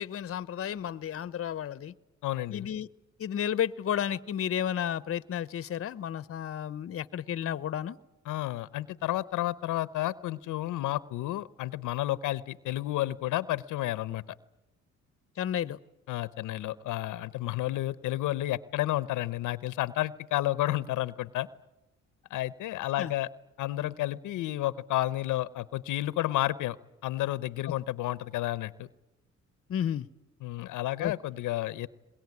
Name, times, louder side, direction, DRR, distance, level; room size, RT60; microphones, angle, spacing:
voice 1, 0.0-1.9 2.5-2.9 3.2-8.0 15.4-15.8 23.0-23.1 27.6-27.8 29.7-30.1 31.0-31.1, left 9 dB, 50° left, 0.8 m, -32 dB
voice 2, 2.2-2.7 8.3-14.2 16.1-21.5 22.3-23.3 23.6-26.8 27.0-28.9 30.4-31.9, left 15 dB, 85° left, 0.8 m, -31 dB
22.0 x 21.5 x 9.6 m
cardioid pair, 90°, 30 cm